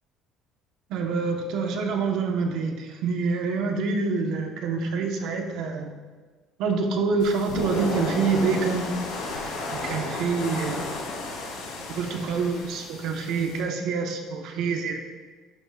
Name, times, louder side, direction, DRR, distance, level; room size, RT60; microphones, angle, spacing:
voice 1, 0.9-5.9 6.6-9.0 9.7-11.0 12.0-15.0, right 4 dB, 65° right, 3 dB, 1.2 m, -26 dB
sound 1, 7.2-13.6, left 2 dB, 75° left, 2.5 m, -33 dB
11.0 x 8.5 x 2.5 m, 1.4 s
cardioid pair, 150°, 0 cm